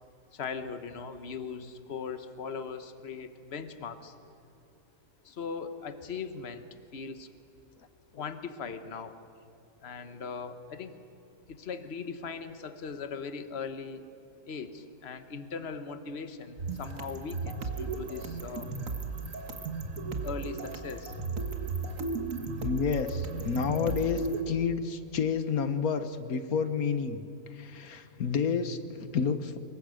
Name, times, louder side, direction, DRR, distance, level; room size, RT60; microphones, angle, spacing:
voice 1, 0.3-4.1 5.2-6.7 6.9-7.3 8.2-9.1 9.8-10.9 11.5-14.0 14.5-18.7 20.2-21.2, left 5 dB, 45° left, 10 dB, 1.4 m, -39 dB
sound 1, 16.6-24.4, right 3 dB, 55° right, 2.0 m, -35 dB
voice 2, 22.6-27.2 27.5-29.6, left 6 dB, 70° left, 10 dB, 1.7 m, -30 dB
25.5 x 22.5 x 6.5 m, 2.8 s
omnidirectional pair, 1.6 m